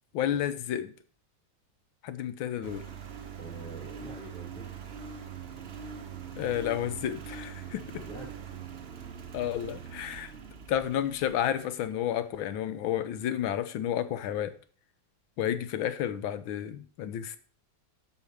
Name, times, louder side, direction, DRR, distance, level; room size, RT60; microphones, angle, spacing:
voice 1, 0.1-0.9 2.0-2.8 6.4-7.9 9.3-10.3 10.7-14.6 15.4-17.4, left 10 dB, 80° left, 1.6 m, -31 dB
Engine, 2.6-12.1, right 7 dB, 50° right, 0.7 m, -43 dB
voice 2, 3.4-4.9 7.9-8.3, right 2 dB, 5° left, 3.8 m, -46 dB
8.1 x 5.3 x 6.6 m
omnidirectional pair, 2.2 m